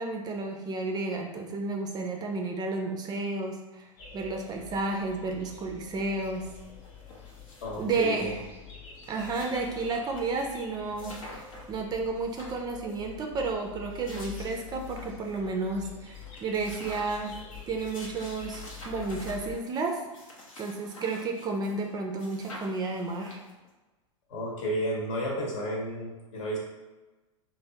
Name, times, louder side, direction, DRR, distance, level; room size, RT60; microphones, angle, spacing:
voice 1, 0.0-3.9 4.1-6.5 7.8-8.4 9.1-11.1 11.7-17.3 17.7-20.0 20.6-23.4, right 3 dB, 25° right, 2 dB, 0.3 m, -32 dB
sound 1, 4.0-19.5, left 7 dB, 45° left, 0.7 m, -46 dB
sound 2, 6.2-6.3 6.6-8.3 8.7-8.8 9.0-10.2 10.5-10.6 11.0-11.8 12.2-13.1 13.7-15.4 15.8-15.9 16.1-21.9 22.2-23.7, left 1 dB, 85° left, 0.8 m, -48 dB
voice 2, 7.6-8.4 24.3-26.6, equal, 70° left, -3 dB, 1.1 m, -32 dB
3.2 x 2.0 x 2.7 m, 1.2 s
hypercardioid pair, 110°, 17 cm